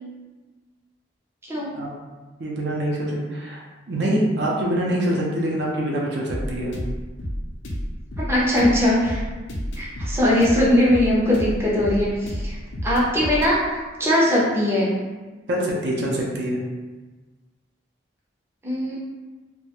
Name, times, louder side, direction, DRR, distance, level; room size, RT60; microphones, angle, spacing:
voice 1, 2.4-6.7 15.5-16.6, right 1 dB, 65° right, -3 dB, 0.5 m, -25 dB
sound 1, 6.3-13.5, equal, 85° left, 0.4 m, -30 dB
voice 2, 8.3-9.2 9.8-14.9 18.6-19.0, left 1 dB, 15° right, -6 dB, 0.5 m, -20 dB
2.3 x 2.1 x 2.9 m, 1.3 s
head